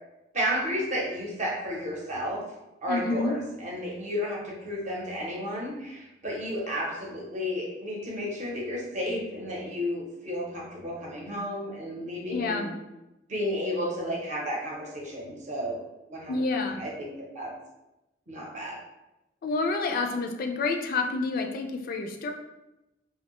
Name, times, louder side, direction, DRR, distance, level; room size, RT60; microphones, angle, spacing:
voice 1, 0.3-2.4 2.8-12.7 13.3-15.8 16.1-16.4 16.8-17.5 18.3-18.8, equal, 40° right, -3 dB, 0.7 m, -32 dB
voice 2, 2.9-3.4 12.3-12.7 16.3-16.8 19.4-22.3, left 3 dB, 50° left, 3 dB, 0.3 m, -28 dB
2.5 x 2.1 x 2.9 m, 0.95 s
head